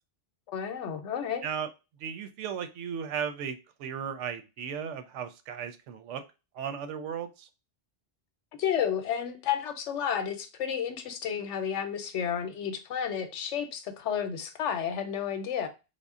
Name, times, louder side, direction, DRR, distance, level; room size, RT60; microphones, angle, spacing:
voice 1, 0.5-1.4 8.6-15.7, left 8 dB, 90° left, 1.0 m, -31 dB
voice 2, 2.0-6.2 6.5-7.5, right 7 dB, 90° right, 0.9 m, -36 dB
3.6 x 2.0 x 3.5 m
omnidirectional pair, 1.2 m